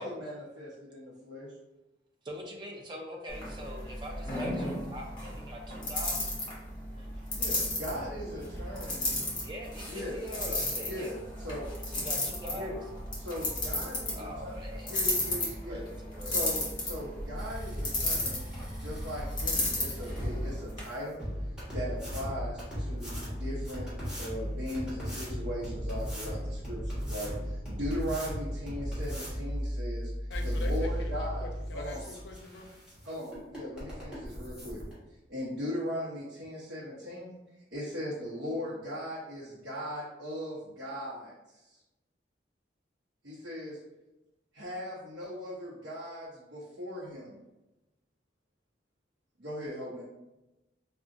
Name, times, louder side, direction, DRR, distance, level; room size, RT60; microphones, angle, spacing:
voice 1, 0.0-1.5 7.3-9.2 9.9-10.2 10.5-10.6 10.8-11.1 11.4-11.7 12.5-12.8 13.2-14.6 14.9-15.8 16.2-18.4 18.8-21.2 21.7-23.9 24.2-30.1 30.4-31.5 31.7-32.0 33.0-34.8 35.3-37.4 37.7-41.8 43.2-43.8 44.5-47.4 49.4-50.0, equal, 80° right, -8 dB, 0.9 m, -39 dB
voice 2, 2.2-6.2 7.0-7.1 9.4-11.1 11.9-12.7 14.1-15.0 15.7-16.4, equal, 25° right, 0 dB, 0.5 m, -43 dB
sound 1, 3.3-20.8, left 1 dB, 25° left, 1.2 m, -34 dB
sound 2, 17.3-34.9, equal, 5° right, 1.4 m, -36 dB
voice 3, 30.3-32.7 33.7-33.9, left 3 dB, 75° left, 4 dB, 0.5 m, -44 dB
4.7 x 2.3 x 2.6 m, 0.99 s
head